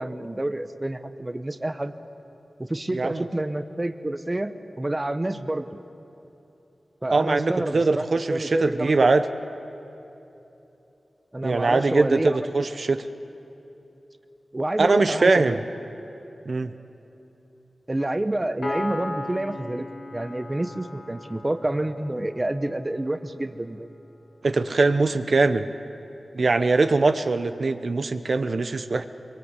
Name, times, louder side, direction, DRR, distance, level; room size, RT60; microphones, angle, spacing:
voice 1, 0.0-1.9 2.6-5.8 7.0-8.0 8.3-9.1 11.3-12.5 14.5-15.6 17.9-19.9 20.1-23.9, right 1 dB, 20° right, 10 dB, 0.9 m, -28 dB
voice 2, 2.9-3.2 7.1-9.2 11.4-13.0 14.8-15.6 16.5-16.7 24.4-25.7 26.3-29.1, right 3 dB, 55° right, 10 dB, 0.8 m, -22 dB
Piano, 18.6-22.2, left 2 dB, 60° left, 2.0 m, -35 dB
24.0 x 23.5 x 8.2 m, 3.0 s
wide cardioid pair, 110°, 0 cm